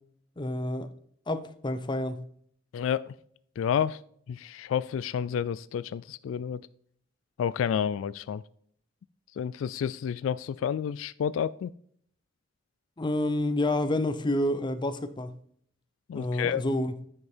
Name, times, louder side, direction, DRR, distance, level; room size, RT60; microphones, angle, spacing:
voice 1, 0.4-0.9 1.3-2.2 13.0-15.4 16.1-16.9, left 1 dB, 25° left, 0.6 m, -29 dB
voice 2, 2.7-3.1 3.6-4.0 4.3-6.6 7.4-8.4 9.4-11.7 16.1-16.6, left 8 dB, 80° left, 0.3 m, -30 dB
9.8 x 5.4 x 4.4 m
head